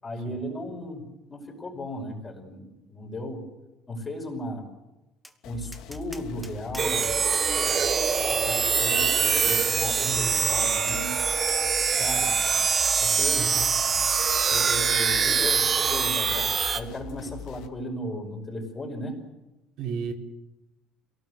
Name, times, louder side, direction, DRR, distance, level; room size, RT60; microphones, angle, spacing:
voice 1, 0.0-3.4 3.9-4.7 5.4-7.2 7.5-7.8 8.3-11.1 12.0-12.6 13.0-13.6 14.3-16.5 16.7-19.2, left 1 dB, 15° left, 1 dB, 5.4 m, -36 dB
Tap, 5.2-5.4 5.7-7.8 8.3-8.5 9.4-9.5 10.4-11.6 12.0-12.1 12.8-13.0, right 1 dB, 5° right, 1.3 m, -43 dB
sound 1, 5.4-17.7, left 8 dB, 55° left, 2.3 m, -42 dB
sound 2, 6.8-16.8, right 6 dB, 25° right, 1.3 m, -24 dB
voice 2, 9.9-10.7 13.4-13.7 19.8-20.1, right 5 dB, 50° right, 1 dB, 3.7 m, -34 dB
28.0 x 18.0 x 8.1 m, 0.97 s
cardioid pair, 180°, 0 cm